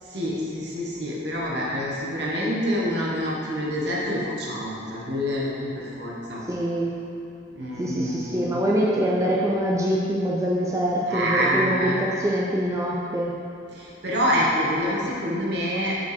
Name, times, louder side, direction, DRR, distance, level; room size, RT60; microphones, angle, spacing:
voice 1, 0.0-6.4 7.5-8.6 11.1-12.0 13.7-15.9, equal, 70° right, -5 dB, 1.2 m, -26 dB
voice 2, 6.5-7.0 7.8-13.3, equal, 15° right, -4 dB, 0.4 m, -24 dB
5.4 x 4.5 x 5.0 m, 2.6 s
head